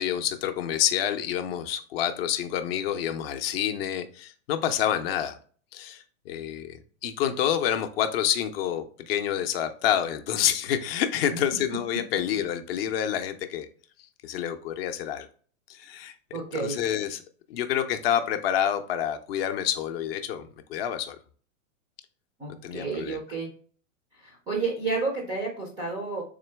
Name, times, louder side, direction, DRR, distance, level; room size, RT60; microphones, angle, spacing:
voice 1, 0.0-5.4 5.7-13.7 14.2-15.3 15.7-16.1 16.5-17.2 17.5-21.2 22.6-23.2, left 10 dB, 50° left, 0.5 m, -28 dB
voice 2, 16.3-16.8 22.4-23.5 24.2-26.2, right 4 dB, 15° right, 0.3 m, -31 dB
3.8 x 3.0 x 3.2 m
hypercardioid pair, 145°, 40 cm